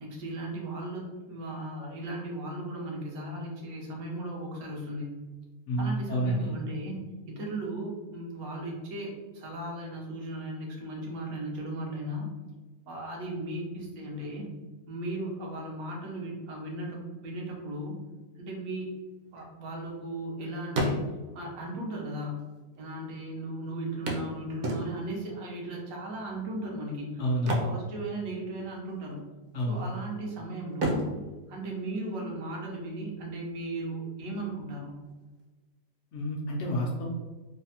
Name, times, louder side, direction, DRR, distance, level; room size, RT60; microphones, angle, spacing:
voice 1, 0.0-5.2 5.8-7.0 7.3-12.3 12.9-14.5 14.9-18.0 18.4-18.9 19.3-21.0 21.3-22.5 22.8-29.2 29.7-31.1 31.5-34.9, right 1 dB, 85° right, -2 dB, 1.2 m, -36 dB
voice 2, 5.7-6.5 27.2-27.7 29.5-29.9 36.1-37.1, equal, 65° left, -1 dB, 0.8 m, -29 dB
sound 1, 19.0-20.3 20.6-21.5 22.4-22.5 22.7-22.8 24.1-25.2 27.3-28.6 28.9-29.1 29.6-30.2 30.7-32.5 34.5-34.6 35.0-35.1, right 1 dB, 65° right, 0.8 m, -33 dB
3.2 x 2.0 x 2.7 m, 1.2 s
omnidirectional pair, 1.5 m